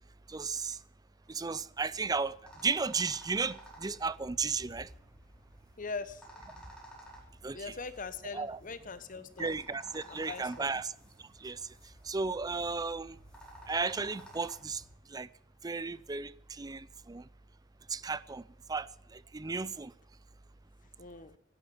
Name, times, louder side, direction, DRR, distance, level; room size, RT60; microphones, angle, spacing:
voice 1, 0.3-0.8 1.3-2.4 2.6-4.9 7.4-7.7 8.3-8.6 9.4-11.0 11.4-11.6 12.0-13.2 13.7-14.8 15.1-15.3 15.6-17.3 17.9-19.9, right 4 dB, 20° right, 0.5 m, -34 dB
sound 1, 1.7-14.9, right 1 dB, 5° left, 4.8 m, -54 dB
voice 2, 5.8-6.2 7.5-9.5 10.1-10.7 21.0-21.4, left 4 dB, 45° left, 1.1 m, -41 dB
12.5 x 10.0 x 9.3 m
head